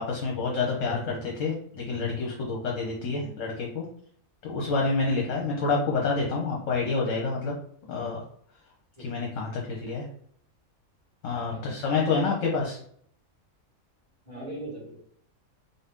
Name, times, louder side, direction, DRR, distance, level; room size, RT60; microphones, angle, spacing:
voice 1, 0.0-3.8 4.4-7.6 7.9-8.2 9.0-10.1 11.2-12.8, left 4 dB, 65° left, -1 dB, 1.1 m, -28 dB
voice 2, 3.0-3.3 7.9-8.1 9.0-9.6 11.5-11.8 14.2-15.0, right 1 dB, 30° right, -6 dB, 1.9 m, -42 dB
4.0 x 2.7 x 3.6 m, 0.64 s
omnidirectional pair, 1.5 m